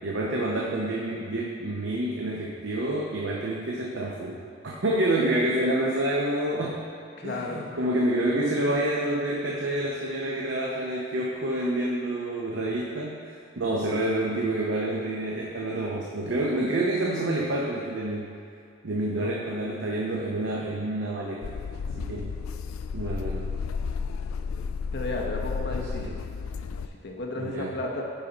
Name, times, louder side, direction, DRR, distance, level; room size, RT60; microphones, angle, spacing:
voice 1, 0.0-6.8 7.2-13.2 13.6-18.3 18.8-21.5 22.0-22.4 22.9-23.5 25.7-26.2 27.4-27.7, right 1 dB, 60° right, -3 dB, 0.6 m, -28 dB
voice 2, 7.2-7.8 19.1-19.3 24.9-26.2 27.0-28.0, left 2 dB, 55° left, 0 dB, 0.8 m, -33 dB
sound 1, 21.4-26.9, left 5 dB, 85° left, 0.3 m, -32 dB
10.0 x 4.2 x 3.9 m, 2.4 s
head